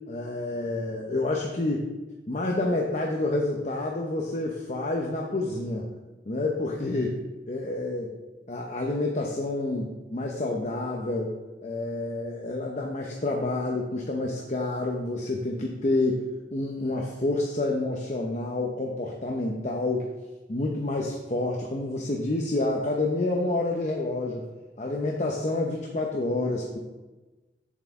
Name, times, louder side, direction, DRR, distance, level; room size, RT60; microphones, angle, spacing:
voice 1, 0.1-1.9 2.3-5.9 6.3-7.2 7.5-8.1 8.5-11.3 11.6-16.2 16.5-20.1 20.5-24.5 24.8-26.8, left 2 dB, 40° left, 0 dB, 0.7 m, -28 dB
7.9 x 7.3 x 3.6 m, 1.2 s
head